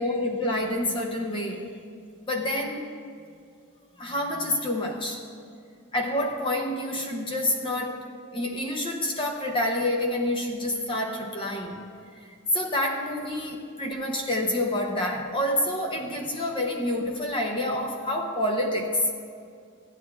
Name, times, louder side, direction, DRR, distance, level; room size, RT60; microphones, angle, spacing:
voice 1, 0.0-1.6 2.3-2.8 4.0-5.2 5.9-11.8 12.5-19.1, left 1 dB, 25° left, 1 dB, 0.6 m, -28 dB
14.5 x 9.7 x 2.4 m, 2.3 s
head